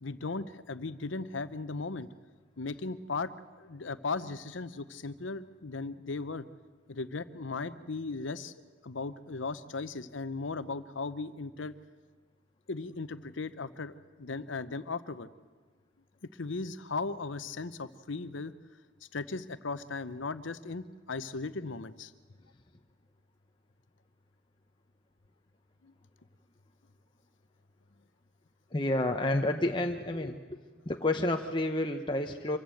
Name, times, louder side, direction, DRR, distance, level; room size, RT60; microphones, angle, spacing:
voice 1, 0.0-2.1 2.6-3.3 3.6-6.4 6.9-8.5 8.8-11.7 12.7-15.3 16.4-18.5 19.1-22.1 25.8-25.9, left 3 dB, 85° left, 14 dB, 0.9 m, -37 dB
voice 2, 28.7-30.4 30.9-32.6, left 1 dB, 25° left, 3 dB, 0.9 m, -29 dB
25.5 x 15.5 x 7.8 m, 1.4 s
head